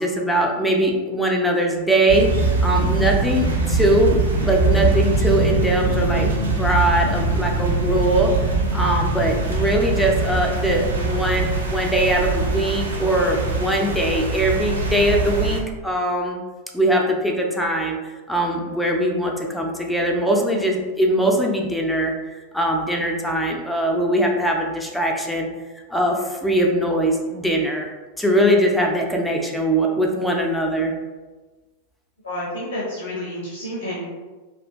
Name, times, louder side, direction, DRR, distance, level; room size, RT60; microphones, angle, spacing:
voice 1, 0.0-8.3 8.7-16.4 16.7-22.1 22.5-25.5 25.9-27.9 28.2-30.9, right 1 dB, 5° left, 0 dB, 0.3 m, -21 dB
sound 1, 2.1-15.6, right 3 dB, 75° right, 0.4 m, -22 dB
voice 2, 32.2-34.1, left 1 dB, 75° left, -6 dB, 0.7 m, -29 dB
2.6 x 2.4 x 2.2 m, 1.3 s
figure-of-eight pair, 90°, 0 cm